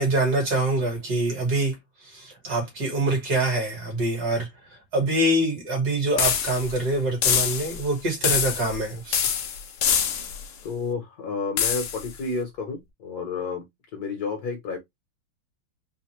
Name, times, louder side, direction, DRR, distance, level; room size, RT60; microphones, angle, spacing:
voice 1, 0.0-1.8 2.0-4.5 4.9-9.2, right 2 dB, 55° right, 2.3 m, -25 dB
sound 1, 6.2-6.8 7.2-7.9 8.2-8.8 9.1-10.5 11.6-12.1, left 8 dB, 75° left, 0.7 m, -25 dB
voice 2, 10.6-13.7 13.9-14.8, left 4 dB, 60° left, 1.1 m, -30 dB
4.0 x 2.5 x 2.9 m
omnidirectional pair, 2.2 m